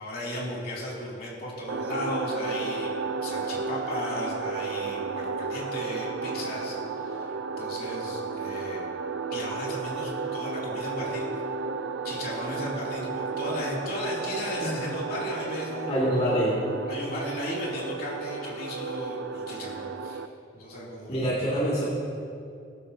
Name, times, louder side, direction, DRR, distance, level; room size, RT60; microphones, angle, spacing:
voice 1, 0.0-2.9 3.2-8.9 9.3-11.3 12.0-15.9 16.9-20.2 20.5-21.3, left 1 dB, 50° left, -5 dB, 2.9 m, -35 dB
sound 1, 1.7-20.3, right 4 dB, 90° right, 0.6 m, -33 dB
voice 2, 15.9-16.6 21.1-21.8, equal, 30° left, -8 dB, 2.4 m, -25 dB
18.5 x 12.0 x 2.8 m, 2.4 s
head